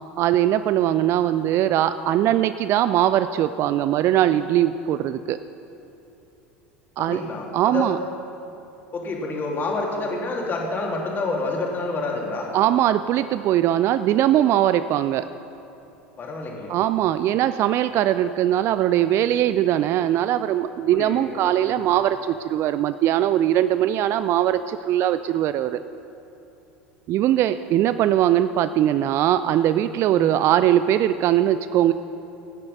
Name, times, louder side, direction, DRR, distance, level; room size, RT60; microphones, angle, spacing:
voice 1, 0.2-5.4 7.0-7.2 7.5-8.0 12.5-15.2 16.7-25.8 27.1-31.9, right 12 dB, 45° right, 12 dB, 0.4 m, -21 dB
voice 2, 7.0-7.9 8.9-12.5 16.2-16.8 20.0-20.1 20.9-21.9 30.1-30.4, left 3 dB, 30° left, -1 dB, 2.7 m, -29 dB
14.5 x 9.6 x 5.4 m, 2.9 s
figure-of-eight pair, 75°, 7 cm